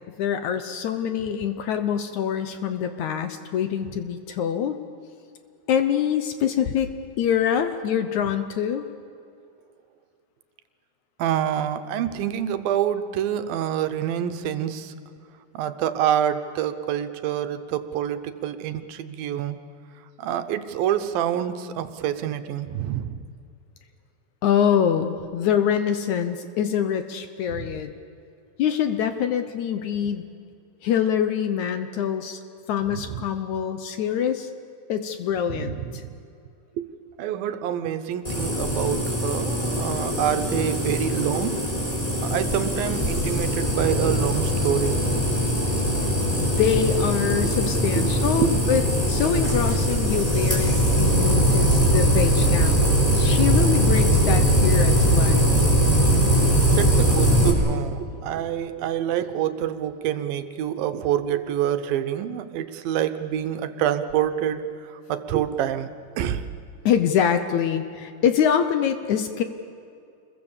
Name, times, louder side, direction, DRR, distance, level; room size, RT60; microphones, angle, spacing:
voice 1, 0.2-4.8 5.7-6.9 7.2-8.9 24.4-27.9 28.6-30.3 30.8-32.4 32.7-34.5 34.9-36.0 46.3-55.5 66.9-69.4, left 8 dB, 70° left, 9 dB, 1.9 m, -25 dB
voice 2, 11.2-14.9 15.5-19.6 20.2-23.2 27.6-27.7 35.6-36.1 36.8-36.9 37.2-41.6 42.2-45.1 47.4-47.5 48.0-48.1 48.4-48.5 51.3-51.5 56.4-64.6 65.1-65.9 66.2-66.4, right 10 dB, 75° right, 10 dB, 2.6 m, -27 dB
sound 1, 38.2-57.5, equal, 10° left, 4.4 m, -21 dB
28.5 x 21.5 x 7.2 m, 2.5 s
omnidirectional pair, 4.3 m